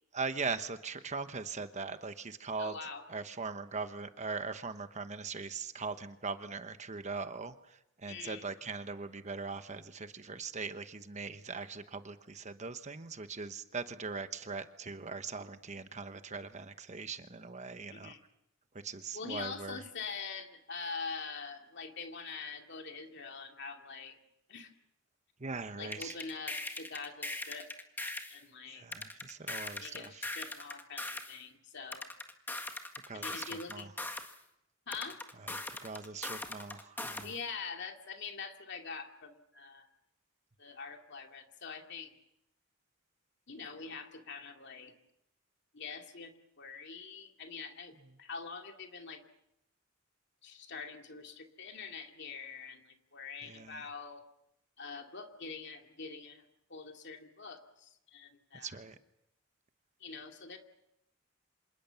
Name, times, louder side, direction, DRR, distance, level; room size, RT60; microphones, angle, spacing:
voice 1, 0.1-2.8 3.1-18.1 18.7-19.8 25.4-26.2 28.7-30.3 33.1-33.9 35.4-37.3 53.4-53.8 58.6-59.0, right 4 dB, 35° right, 10 dB, 1.1 m, -41 dB
voice 2, 2.6-3.0 8.1-8.4 17.9-18.2 19.1-24.2 24.5-24.7 25.8-27.7 28.3-28.8 29.8-32.1 33.1-33.9 34.9-35.2 37.2-39.9 40.6-42.1 43.5-44.9 45.7-47.9 48.2-49.2 50.4-54.2 54.8-56.4 56.7-58.8 60.0-60.6, left 5 dB, 55° left, 4 dB, 2.5 m, -44 dB
sound 1, 25.9-28.4 28.9-31.4 31.9-34.4 34.9-37.4, left 2 dB, 10° left, 1.7 m, -40 dB
27.0 x 19.5 x 7.1 m, 0.82 s
head